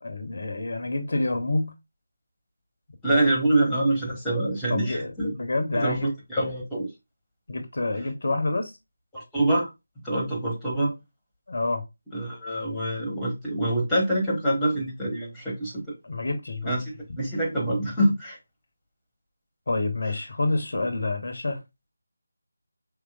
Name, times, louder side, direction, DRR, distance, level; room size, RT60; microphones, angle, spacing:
voice 1, 0.0-1.7 3.1-3.4 4.7-6.1 7.5-8.7 11.5-11.8 16.0-16.8 19.7-21.6, left 2 dB, 50° left, 0.8 m, -28 dB
voice 2, 3.0-5.3 5.7-6.9 9.1-9.7 10.0-10.9 12.1-15.9 16.6-16.8 17.2-18.4, right 1 dB, 5° left, 1.2 m, -25 dB
4.8 x 3.3 x 2.3 m
figure-of-eight pair, 160°, 0 cm